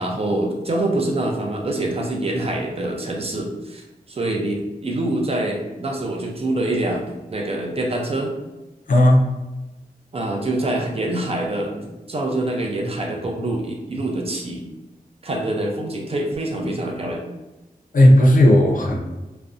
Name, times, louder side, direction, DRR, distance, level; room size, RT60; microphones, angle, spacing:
voice 1, 0.0-8.3 10.1-14.6 15.2-17.2, right 1 dB, 40° right, 1 dB, 0.5 m, -25 dB
voice 2, 8.9-9.2 17.9-19.0, left 1 dB, 60° left, 1 dB, 0.4 m, -13 dB
2.5 x 2.0 x 2.5 m, 1.1 s
wide cardioid pair, 70°, 15 cm